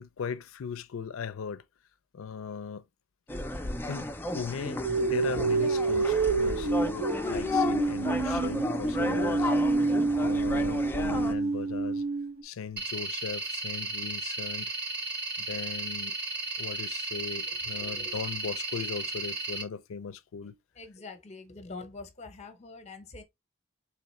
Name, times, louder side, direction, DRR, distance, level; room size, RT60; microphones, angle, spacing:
voice 1, 0.0-1.6 2.1-2.8 3.8-4.8 5.1-9.5 10.2-12.0 12.4-14.7 15.4-16.2 16.6-20.6, left 6 dB, 70° left, 0.4 m, -38 dB
sound 1, 3.3-11.3, left 2 dB, 10° left, 0.4 m, -33 dB
sound 2, 4.8-12.4, right 3 dB, 75° right, 0.7 m, -28 dB
sound 3, 12.8-19.6, right 3 dB, 55° right, 1.0 m, -34 dB
voice 2, 17.5-18.1 20.8-23.2, left 3 dB, 35° left, 0.7 m, -45 dB
3.8 x 2.9 x 3.0 m
head